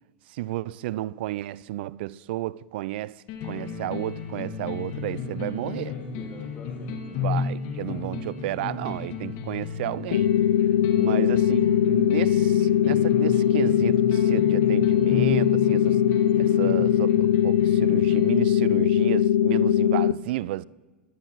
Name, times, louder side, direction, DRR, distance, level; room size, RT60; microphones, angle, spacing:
voice 1, 0.3-3.2 3.4-5.9 7.2-10.3 11.0-16.0 16.4-20.6, right 16 dB, 65° right, 0.3 m, -32 dB
sound 1, 3.3-19.2, left 5 dB, 50° left, 1.8 m, -33 dB
voice 2, 5.6-7.3 11.0-11.3, left 4 dB, 30° left, 1.8 m, -45 dB
sound 2, 10.1-20.1, left 10 dB, 75° left, 0.5 m, -21 dB
21.5 x 10.5 x 3.1 m
hypercardioid pair, 105°, 6 cm